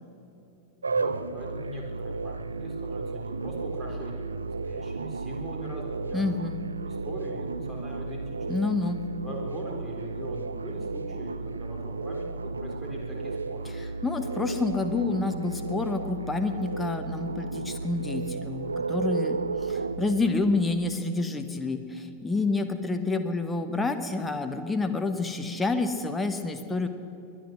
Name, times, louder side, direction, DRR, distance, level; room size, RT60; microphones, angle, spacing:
sound 1, 0.8-20.4, right 3 dB, 75° right, 0.4 m, -33 dB
voice 1, 0.9-6.3 6.8-8.4 9.2-13.7, equal, 15° right, -1 dB, 4.0 m, -41 dB
voice 2, 6.1-6.6 8.5-9.0 14.0-26.9, left 3 dB, 10° left, 7 dB, 1.2 m, -28 dB
22.0 x 10.0 x 6.3 m, 2.9 s
figure-of-eight pair, 90°, 0 cm